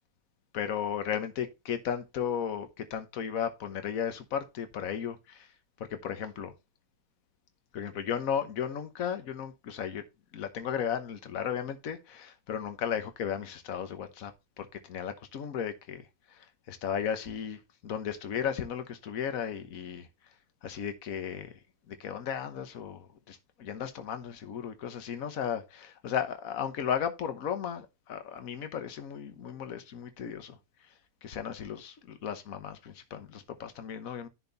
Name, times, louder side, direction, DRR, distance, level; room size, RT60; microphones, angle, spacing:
voice 1, 0.5-5.5 5.8-6.5 7.7-10.0 10.3-20.1 20.6-21.6 21.9-30.6 31.2-34.3, left 8 dB, 70° left, 1.5 m, -35 dB
10.5 x 4.4 x 4.0 m
omnidirectional pair, 1.5 m